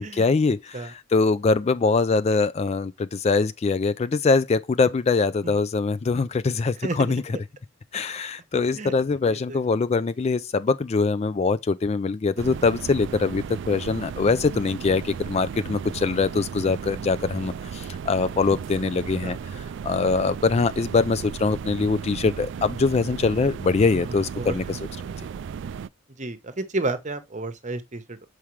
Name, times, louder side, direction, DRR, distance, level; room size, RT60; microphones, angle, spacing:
voice 1, 0.1-7.2 7.9-24.9, left 4 dB, 30° left, 0.3 m, -23 dB
voice 2, 6.8-7.1 8.7-8.9 9.3-9.6 19.2-19.4 23.9-24.5 26.2-28.3, right 2 dB, 35° right, 1.0 m, -32 dB
sound 1, 12.4-25.9, right 7 dB, 60° right, 0.3 m, -35 dB
7.2 x 4.8 x 3.2 m
head